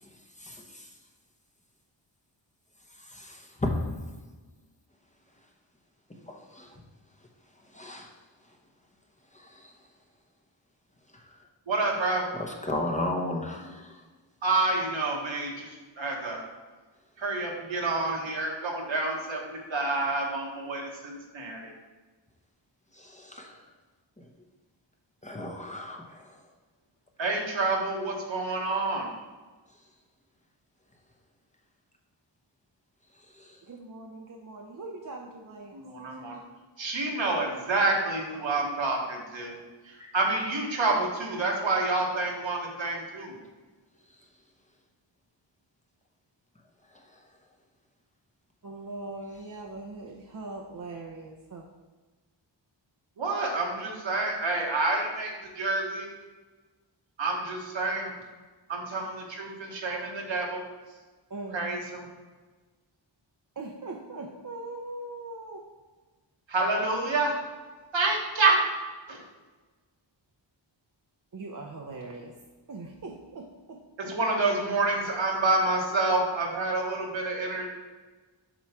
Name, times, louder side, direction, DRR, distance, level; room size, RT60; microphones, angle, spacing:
voice 1, 0.4-0.9 3.0-3.8 6.3-6.8 7.7-8.1 9.3-9.7 11.1-11.2 12.3-13.9 22.9-23.6 25.2-26.3 33.4-33.6 40.0-40.1, left 1 dB, 15° left, 0.8 m, -35 dB
voice 2, 11.7-12.2 14.4-16.4 17.2-21.7 27.2-29.1 35.7-36.4 36.8-39.6 39.8-43.4 53.2-56.1 57.2-58.2 58.7-60.6 61.5-62.1 66.5-67.4 67.9-68.6 69.1-69.2 74.0-77.7, right 3 dB, 80° right, 1.5 m, -28 dB
voice 3, 33.7-35.8 36.1-36.4 48.6-51.7 61.3-61.7 63.6-65.7 71.3-72.4 72.7-74.1, right 2 dB, 45° right, 0.6 m, -41 dB
7.5 x 3.1 x 5.7 m
wide cardioid pair, 95°, 45 cm